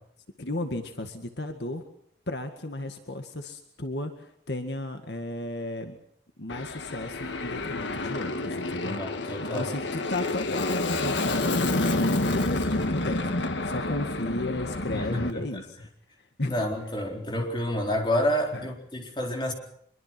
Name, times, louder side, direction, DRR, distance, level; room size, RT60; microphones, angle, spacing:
voice 1, 0.4-1.8 2.3-6.0 6.4-9.1 9.4-15.8 16.4-16.6 18.5-18.7, left 1 dB, 70° left, 6 dB, 1.9 m, -34 dB
Aircraft, 6.5-15.3, left 2 dB, 85° left, 1.6 m, -29 dB
voice 2, 8.8-9.7 14.9-15.4 16.5-19.5, equal, 25° left, 1 dB, 4.0 m, -29 dB
25.0 x 23.0 x 6.1 m, 0.67 s
head